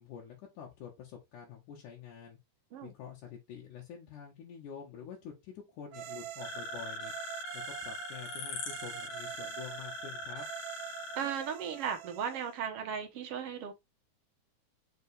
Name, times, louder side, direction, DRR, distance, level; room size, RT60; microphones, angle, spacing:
voice 1, 0.0-2.4 2.8-7.1 7.5-10.5, left 8 dB, 80° left, 2.7 m, -47 dB
sound 1, 5.9-12.6, right 13 dB, 90° right, 2.2 m, -45 dB
sound 2, 6.4-11.2, left 3 dB, 55° left, 2.7 m, -42 dB
voice 2, 11.1-13.7, right 7 dB, 60° right, 1.7 m, -36 dB
6.1 x 4.8 x 3.3 m
omnidirectional pair, 3.6 m